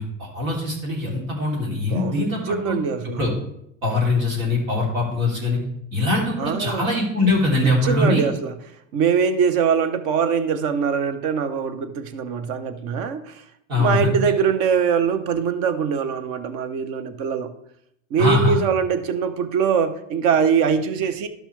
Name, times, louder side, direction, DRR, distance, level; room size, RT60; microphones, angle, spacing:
voice 1, 0.0-2.8 3.2-3.3 3.8-5.6 5.9-8.2 13.7-14.0 18.2-18.6, left 2 dB, 80° right, -2 dB, 3.2 m, -22 dB
voice 2, 1.9-3.3 6.4-6.9 7.6-8.6 8.9-13.4 13.8-17.5 18.1-21.3, right 7 dB, 55° right, 11 dB, 1.0 m, -22 dB
12.0 x 5.9 x 3.3 m, 0.74 s
hypercardioid pair, 90°, 40 cm